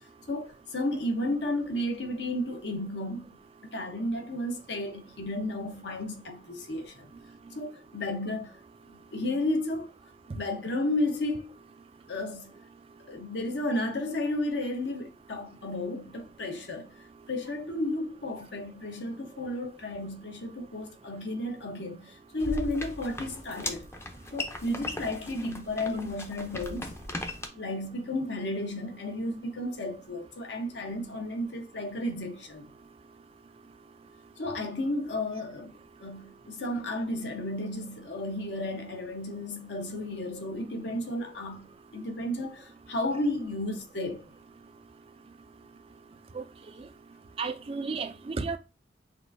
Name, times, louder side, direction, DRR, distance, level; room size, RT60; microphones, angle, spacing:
voice 1, 0.3-3.3 3.7-7.1 7.5-8.5 8.9-9.9 10.3-11.5 12.1-12.5 13.1-16.9 17.3-23.9 24.3-26.9 27.5-32.6 34.4-41.7 41.9-44.2, left 1 dB, 65° left, 0.9 m, -33 dB
sound 1, 22.4-27.5, left 2 dB, 15° left, 0.6 m, -38 dB
voice 2, 47.4-48.6, right 4 dB, 30° right, 0.4 m, -33 dB
6.1 x 2.5 x 2.6 m
head